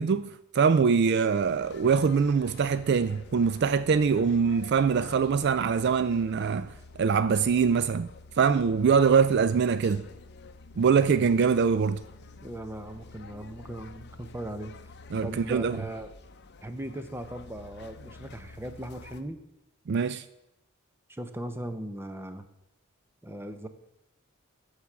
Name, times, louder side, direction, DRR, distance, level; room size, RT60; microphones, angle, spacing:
voice 1, 0.0-8.1 8.4-10.1 10.8-12.0 15.1-15.8 19.9-20.2, right 6 dB, 55° right, 0.4 m, -23 dB
sound 1, 1.4-19.2, left 3 dB, 55° left, 0.7 m, -48 dB
voice 2, 12.4-14.7 15.2-16.1 16.6-19.4 21.1-22.5 23.2-23.7, right 1 dB, 10° right, 0.8 m, -38 dB
14.0 x 4.9 x 7.2 m
head